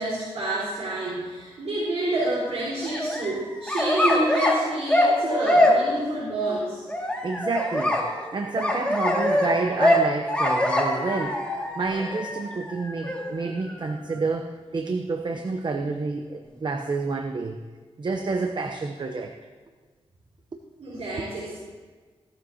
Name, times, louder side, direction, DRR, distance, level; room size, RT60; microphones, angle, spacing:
voice 1, 0.0-6.8 20.8-21.6, right 1 dB, 80° right, -8 dB, 4.1 m, -28 dB
sound 1, 2.8-4.6 4.9-6.0 6.9-14.1, left 1 dB, 10° left, 2.1 m, -24 dB
voice 2, 7.2-8.0 8.3-17.6 18.0-19.3, right 3 dB, 45° right, 5 dB, 0.8 m, -29 dB
17.0 x 12.5 x 2.8 m, 1.5 s
wide cardioid pair, 120°, 11 cm